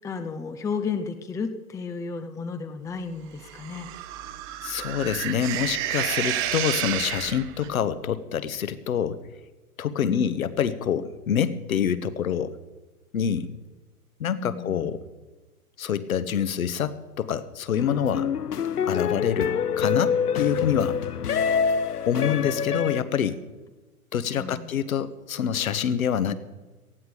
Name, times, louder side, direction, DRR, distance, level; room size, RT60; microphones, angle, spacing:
voice 1, 0.0-3.9 10.0-10.4 14.3-14.9 24.4-24.7, left 5 dB, 5° left, 8 dB, 0.7 m, -33 dB
sound 1, 3.4-7.7, right 12 dB, 30° right, 1.1 m, -30 dB
voice 2, 4.6-9.2 9.8-12.6 13.1-13.5 14.2-15.0 15.8-18.3 18.9-21.0 22.1-23.4 24.1-26.3, left 8 dB, 65° left, 13 dB, 1.4 m, -26 dB
sound 2, 17.8-23.0, left 7 dB, 90° left, 0.7 m, -26 dB
19.0 x 14.5 x 5.1 m, 1.2 s
figure-of-eight pair, 110°, 45 cm